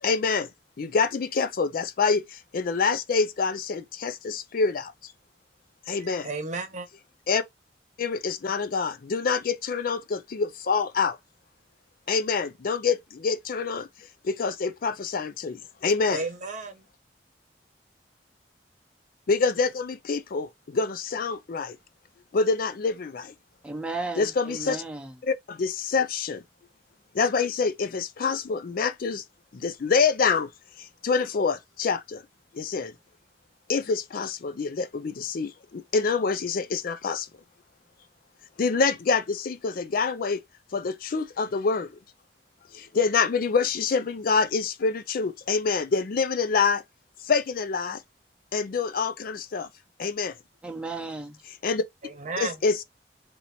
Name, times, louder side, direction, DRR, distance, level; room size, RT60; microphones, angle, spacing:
voice 1, 0.0-0.5 0.8-5.1 5.9-6.3 7.3-7.4 8.0-11.2 12.1-13.9 14.2-16.2 19.3-21.8 22.3-23.3 24.2-24.8 25.2-26.4 27.1-29.2 29.5-30.5 30.8-32.2 32.5-32.9 33.7-37.3 38.6-40.4 40.7-42.0 42.7-46.8 47.2-48.0 48.5-49.7 50.0-50.3 51.6-51.8 52.4-52.8, left 5 dB, 55° left, 0.4 m, -26 dB
voice 2, 6.0-6.9 16.1-16.9 52.0-52.6, right 3 dB, 45° right, 0.9 m, -33 dB
voice 3, 23.6-25.1 50.6-51.4, right 3 dB, 5° right, 0.9 m, -34 dB
3.0 x 2.8 x 4.2 m
head